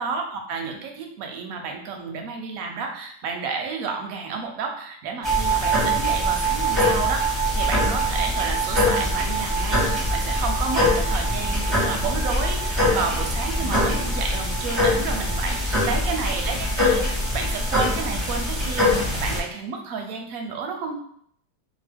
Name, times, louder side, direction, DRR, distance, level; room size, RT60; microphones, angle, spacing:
voice 1, 0.0-20.9, right 5 dB, 70° right, 3 dB, 0.9 m, -31 dB
sound 1, 5.2-19.4, equal, 30° right, 0.5 m, -23 dB
2.9 x 2.0 x 3.3 m, 0.65 s
omnidirectional pair, 1.8 m